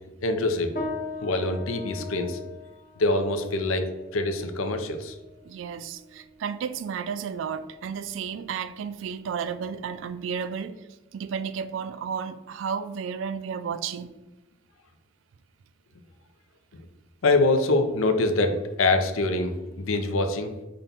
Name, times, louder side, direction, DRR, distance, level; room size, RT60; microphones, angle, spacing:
voice 1, 0.2-0.7 1.2-2.4 3.0-5.2 17.2-20.5, left 2 dB, 90° left, 0.5 m, -24 dB
sound 1, 0.8-10.4, left 3 dB, 45° left, 0.8 m, -41 dB
voice 2, 5.4-10.8 11.1-14.1, right 6 dB, 75° right, 0.3 m, -32 dB
5.2 x 2.2 x 4.0 m
head